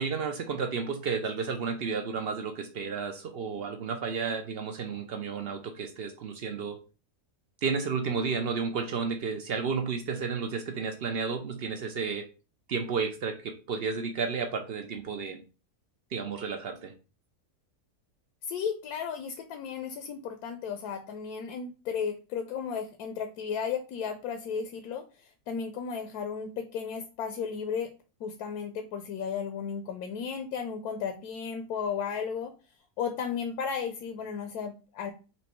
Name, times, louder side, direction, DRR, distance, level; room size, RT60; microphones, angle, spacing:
voice 1, 0.0-6.8 7.6-12.2 12.7-15.4 16.1-16.9, right 5 dB, 75° right, 6 dB, 0.5 m, -32 dB
voice 2, 18.4-27.9 28.2-32.5 33.0-35.1, left 6 dB, 75° left, 7 dB, 1.1 m, -34 dB
4.4 x 2.7 x 4.4 m, 0.33 s
omnidirectional pair, 1.7 m